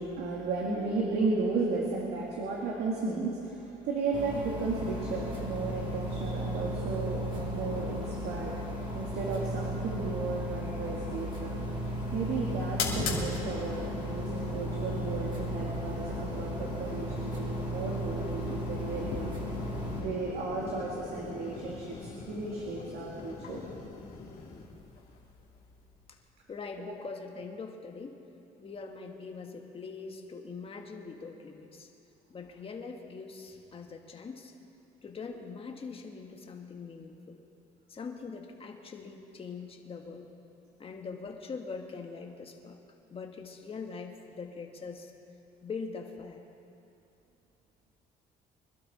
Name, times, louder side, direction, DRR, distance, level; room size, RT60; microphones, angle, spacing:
voice 1, 0.0-11.6 12.1-19.3 19.7-23.6, right 3 dB, 80° right, -3 dB, 2.1 m, -34 dB
sound 1, 4.1-20.0, equal, 30° right, 3.8 m, -35 dB
sound 2, 10.9-26.2, left 4 dB, 60° left, 3.1 m, -41 dB
voice 2, 26.5-28.2 28.6-31.9 32.3-34.5 35.0-37.4 37.9-40.3 40.8-42.8 43.1-45.1 45.6-46.4, left 4 dB, 35° left, 3 dB, 1.7 m, -42 dB
25.0 x 12.0 x 4.3 m, 2.7 s
cardioid pair, 110°, 17 cm